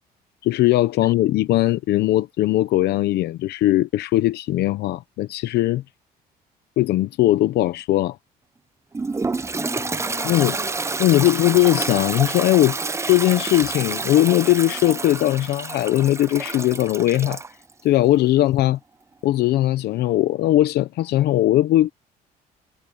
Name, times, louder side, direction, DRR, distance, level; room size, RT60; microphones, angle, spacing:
voice 1, 0.4-5.8 6.8-8.2 10.2-10.6 11.0-12.8 13.0-17.4 17.8-18.8 19.2-21.9, left 15 dB, 75° left, 0.9 m, -19 dB
Toilet flush, 8.9-17.5, right 3 dB, 15° right, 0.8 m, -28 dB
voice 2, 9.5-11.5, left 4 dB, 20° left, 4.4 m, -40 dB
cardioid pair, 110°, 17 cm